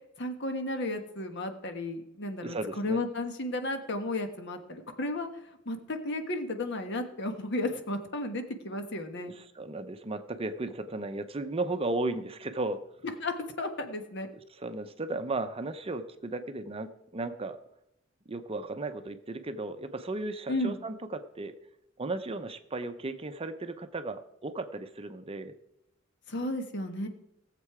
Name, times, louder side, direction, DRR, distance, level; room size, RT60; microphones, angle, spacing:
voice 1, 0.2-5.3 5.6-9.3 13.2-14.3 20.5-20.8 26.3-27.1, left 1 dB, 60° left, 6 dB, 1.4 m, -33 dB
voice 2, 2.4-3.0 9.3-12.8 14.5-17.6 18.3-21.5 22.0-25.5, right 2 dB, 30° right, 9 dB, 0.6 m, -35 dB
18.0 x 7.5 x 4.8 m, 0.81 s
head